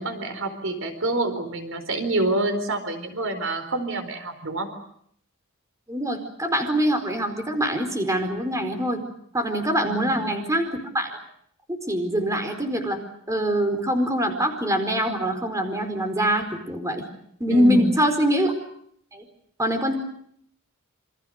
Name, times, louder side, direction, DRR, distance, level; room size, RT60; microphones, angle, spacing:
voice 1, 0.0-4.7 9.8-10.3 17.5-18.0, right 1 dB, 60° right, 8 dB, 4.4 m, -27 dB
voice 2, 5.9-9.0 9.3-11.1 11.7-13.0 13.3-17.0 17.4-18.5 19.1-19.2 19.6-20.0, equal, 15° right, 6 dB, 4.6 m, -24 dB
28.5 x 26.0 x 6.6 m, 0.68 s
head